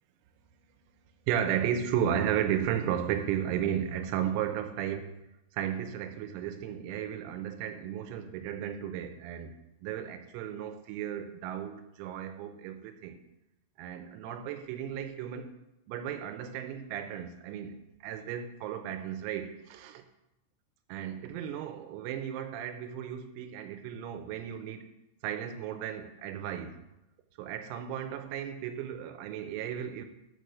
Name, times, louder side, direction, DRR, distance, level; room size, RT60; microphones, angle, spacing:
voice 1, 1.3-5.0 5.5-9.5 9.8-13.2 13.8-15.5 15.9-20.0 20.9-24.9 25.2-26.8 27.4-30.1, right 9 dB, 90° right, 3.6 m, -34 dB
6.8 x 6.3 x 6.7 m
omnidirectional pair, 6.0 m